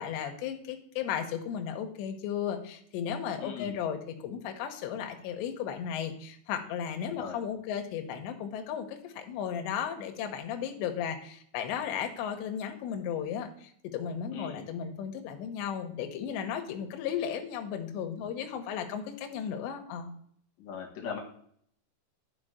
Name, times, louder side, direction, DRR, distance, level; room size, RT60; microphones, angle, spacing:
voice 1, 0.0-20.1, left 8 dB, 75° left, 5 dB, 2.8 m, -35 dB
voice 2, 3.4-3.7 7.1-7.4 14.3-14.6 20.6-21.2, left 7 dB, 55° left, -1 dB, 2.1 m, -39 dB
11.0 x 4.8 x 5.0 m, 0.63 s
omnidirectional pair, 5.8 m